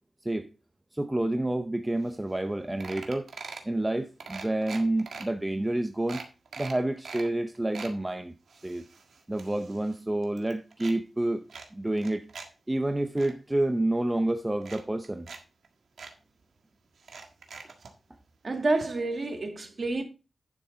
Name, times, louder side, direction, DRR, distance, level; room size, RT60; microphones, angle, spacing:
voice 1, 0.9-3.3 3.6-6.2 6.6-8.3 8.6-8.8 9.3-11.4 11.7-12.3 12.7-15.3, right 1 dB, 15° right, 0.6 m, -29 dB
sound 1, 2.1-2.2 2.4-2.5 2.8-3.7 4.2-5.2 5.7-5.8 6.1-7.3 7.5-8.0 8.5-10.0 10.2-11.0 11.5-12.5 12.8-13.3 14.1-14.2 14.6-15.4 15.6-15.7 16.0-16.1 17.0-17.9 18.8-18.9 19.2-19.3, right 4 dB, 90° right, 1.6 m, -43 dB
voice 2, 18.4-20.0, right 3 dB, 45° right, 2.1 m, -28 dB
11.0 x 6.3 x 4.0 m
wide cardioid pair, 105°, 0 cm